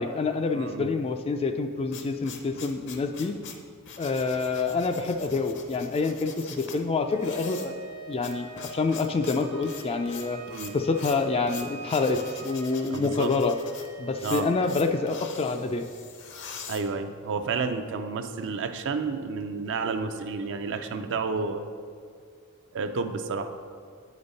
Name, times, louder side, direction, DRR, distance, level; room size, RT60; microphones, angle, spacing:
voice 1, 0.0-3.4 4.0-7.7 8.1-10.4 10.7-13.5 14.0-15.8, left 4 dB, 25° left, 7 dB, 0.3 m, -27 dB
voice 2, 0.5-0.9 10.5-10.7 12.9-13.3 14.2-14.5 16.7-21.6 22.7-23.5, right 4 dB, 55° right, 8 dB, 0.4 m, -30 dB
sound 1, 1.5-17.5, left 6 dB, 55° left, 0.6 m, -43 dB
Wind instrument woodwind instrument, 7.0-14.9, right 4 dB, 80° right, 1.1 m, -45 dB
8.7 x 5.1 x 4.1 m, 2.2 s
head